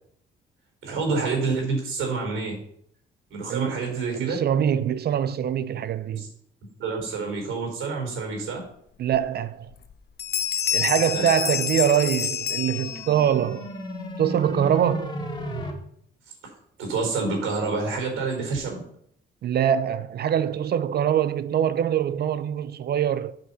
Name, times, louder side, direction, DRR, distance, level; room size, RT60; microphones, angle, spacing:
voice 1, 0.8-2.6 3.3-4.4 6.2-6.3 6.8-8.6 11.1-11.3 16.8-18.8, right 4 dB, 80° right, 4.3 m, -28 dB
voice 2, 3.5-3.9 4.1-6.2 9.0-9.7 10.7-13.7 14.2-15.1 19.4-23.4, right 9 dB, 55° right, 0.5 m, -24 dB
Bell, 9.1-9.2 9.7-9.9 10.2-13.3, left 8 dB, 55° left, 0.9 m, -28 dB
sound 1, 12.4-15.7, left 1 dB, 20° left, 2.1 m, -35 dB
8.5 x 5.8 x 5.6 m
cardioid pair, 90°, 20 cm